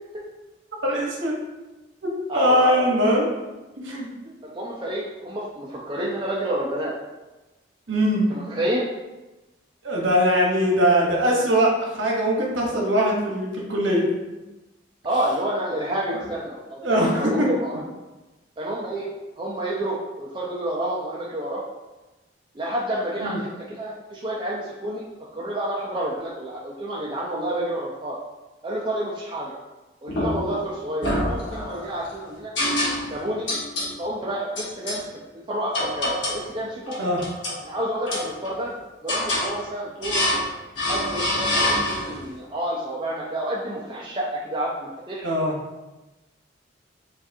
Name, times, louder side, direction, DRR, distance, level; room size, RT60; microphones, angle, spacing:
voice 1, 0.8-1.4 2.0-3.3 3.8-4.3 7.9-8.3 9.8-14.1 16.8-17.5 23.2-23.4 37.0-37.2 45.2-45.5, equal, 80° right, -2 dB, 1.0 m, -21 dB
voice 2, 2.3-2.9 4.4-6.9 8.3-8.9 15.0-17.8 18.6-19.1 19.4-21.6 22.5-25.1 25.3-28.2 28.6-29.5 30.0-32.5 33.1-33.5 34.0-35.0 35.5-37.0 37.6-38.7 39.0-40.3 40.9-45.3, right 1 dB, 25° right, -5 dB, 0.5 m, -29 dB
sound 1, 30.1-30.6 31.0-31.9 32.6-33.2 33.5-33.9 34.6-35.0 35.7-36.5 36.9-37.6 38.1-38.7 39.1-39.5 40.0-40.5 40.8-42.2, left 1 dB, 75° left, 1.0 m, -26 dB
7.3 x 2.5 x 2.7 m, 1.1 s
head